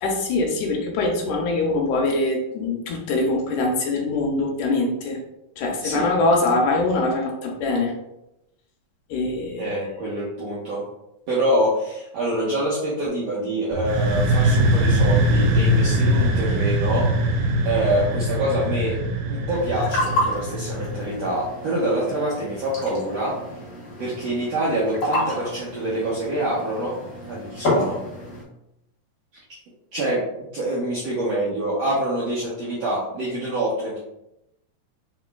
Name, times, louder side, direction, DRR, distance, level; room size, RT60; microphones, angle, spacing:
voice 1, 0.0-5.2 5.6-7.9 9.1-9.8, left 2 dB, 80° left, 1 dB, 1.9 m, -23 dB
voice 2, 9.5-10.8 11.3-17.1 17.6-19.0 19.3-23.3 24.0-27.0 27.3-28.0 29.9-30.2 30.5-34.0, right 1 dB, 70° right, -7 dB, 1.6 m, -25 dB
sound 1, 13.7-21.4, equal, 90° right, 2.3 m, -21 dB
sound 2, 19.5-28.4, left 1 dB, 45° left, 1.6 m, -29 dB
5.0 x 4.0 x 2.2 m, 0.86 s
omnidirectional pair, 4.0 m